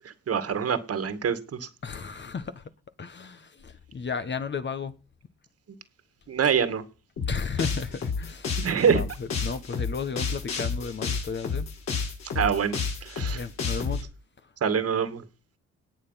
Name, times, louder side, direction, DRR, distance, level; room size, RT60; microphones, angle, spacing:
voice 1, 0.0-1.7 6.3-6.8 8.6-9.0 12.3-13.4 14.6-15.2, right 7 dB, 50° right, 2.1 m, -25 dB
voice 2, 1.8-2.6 3.0-4.9 7.3-11.7 13.2-14.0, left 5 dB, 35° left, 1.4 m, -34 dB
sound 1, 7.2-14.0, left 5 dB, 60° left, 6.3 m, -30 dB
18.5 x 7.0 x 5.8 m
cardioid pair, 90°, 30 cm